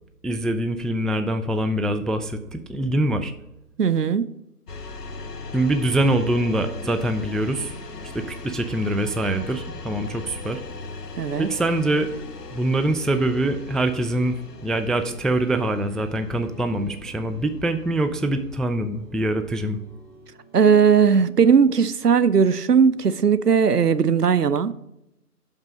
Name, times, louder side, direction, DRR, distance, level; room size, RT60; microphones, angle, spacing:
voice 1, 0.2-3.3 5.5-7.7 8.0-10.6 11.4-12.1 12.5-14.3 14.6-19.8, right 1 dB, ahead, 7 dB, 0.3 m, -24 dB
voice 2, 3.8-4.2 11.2-11.5 20.5-24.7, right 6 dB, 75° right, 14 dB, 0.6 m, -18 dB
sound 1, 4.7-18.6, left 3 dB, 80° left, 0.8 m, -39 dB
sound 2, 5.1-24.1, left 1 dB, 30° left, 1.0 m, -48 dB
5.9 x 5.3 x 5.1 m, 0.87 s
figure-of-eight pair, 165°, 47 cm